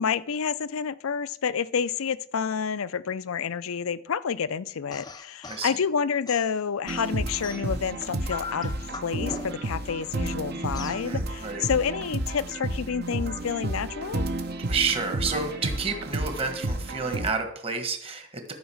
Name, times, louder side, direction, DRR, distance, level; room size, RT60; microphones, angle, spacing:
voice 1, 0.0-8.7 9.0-14.3, left 6 dB, 75° left, 16 dB, 0.5 m, -29 dB
sound 1, 4.9-5.7 6.3-7.9 8.3-9.8 10.7-11.1, left 4 dB, 20° left, 0.5 m, -40 dB
sound 2, 6.9-17.3, right 1 dB, 45° right, 0.9 m, -32 dB
voice 2, 10.9-11.6 14.7-18.5, right 4 dB, 25° right, 6 dB, 1.4 m, -30 dB
13.0 x 5.2 x 7.1 m, 0.65 s
head